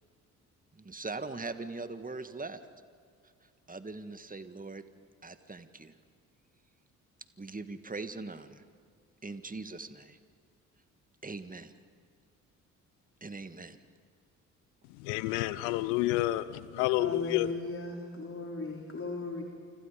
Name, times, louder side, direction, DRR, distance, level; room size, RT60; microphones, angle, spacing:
voice 1, 0.7-2.6 3.7-4.8 5.2-5.9 7.4-8.6 9.2-10.2 11.2-11.7 13.2-13.8, right 3 dB, 20° right, 10 dB, 1.9 m, -41 dB
voice 2, 14.9-17.5, left 16 dB, 75° left, 16 dB, 0.8 m, -29 dB
voice 3, 17.0-19.4, left 3 dB, 30° left, 1 dB, 3.8 m, -37 dB
29.0 x 26.0 x 5.2 m, 2.2 s
hypercardioid pair, 50°, 42 cm